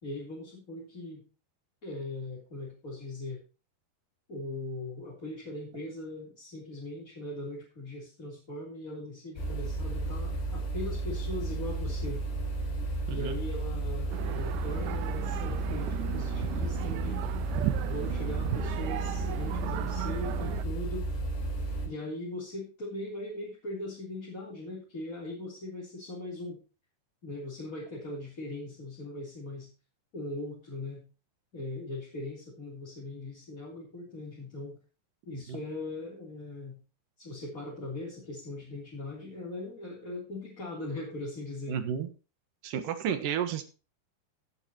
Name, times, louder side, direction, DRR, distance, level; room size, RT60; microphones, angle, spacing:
voice 1, 0.0-1.2 1.8-3.4 4.3-12.2 13.1-17.3 17.8-21.1 21.8-26.6 27.2-29.7 30.1-31.0 31.5-34.8 35.2-36.8 37.2-41.8, left 2 dB, 20° left, -6 dB, 3.4 m, -40 dB
sound 1, 9.4-21.9, right 2 dB, 75° left, 6.0 m, -33 dB
sound 2, 14.1-20.6, right 13 dB, 90° right, 2.9 m, -36 dB
voice 2, 41.7-42.1 42.6-43.6, right 9 dB, 65° right, 8 dB, 2.5 m, -31 dB
17.0 x 7.9 x 3.0 m, 0.33 s
omnidirectional pair, 4.9 m